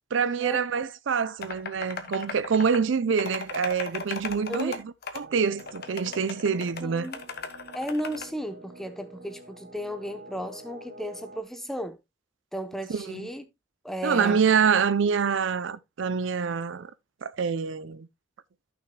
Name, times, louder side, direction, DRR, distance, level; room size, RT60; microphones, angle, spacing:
voice 1, 0.1-4.8 5.1-7.1 12.9-13.2 14.0-16.9 17.2-18.1, right 6 dB, 75° right, 0.5 m, -26 dB
sound 1, 1.4-2.8 3.1-4.8 5.0-5.2 5.6-8.2, left 4 dB, 55° left, 1.1 m, -36 dB
voice 2, 4.5-4.8 6.8-7.2 7.7-12.0 12.5-13.4 13.8-14.4, equal, ahead, 0.8 m, -34 dB
sound 2, 5.2-11.4, right 1 dB, 50° right, 1.0 m, -47 dB
14.5 x 6.1 x 2.2 m
head